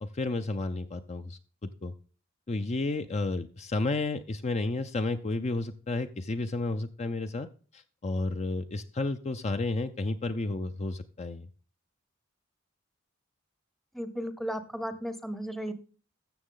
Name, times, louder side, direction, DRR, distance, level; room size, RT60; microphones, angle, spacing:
voice 1, 0.0-1.9 2.5-7.5 7.7-11.5, left 2 dB, 35° left, 8 dB, 0.5 m, -32 dB
voice 2, 13.9-15.7, equal, ahead, 11 dB, 0.7 m, -35 dB
13.0 x 7.2 x 3.8 m, 0.39 s
head